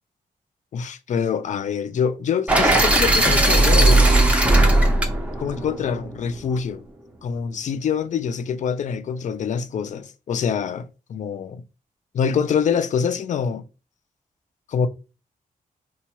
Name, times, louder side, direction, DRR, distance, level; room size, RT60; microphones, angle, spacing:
voice 1, 0.7-4.1 5.4-6.8 7.2-11.6 12.1-13.6 14.7-14.9, left 7 dB, 55° left, 0.4 m, -25 dB
sound 1, 2.5-6.5, right 2 dB, 10° right, 0.5 m, -17 dB
4.1 x 2.3 x 2.9 m
wide cardioid pair, 165°, 15 cm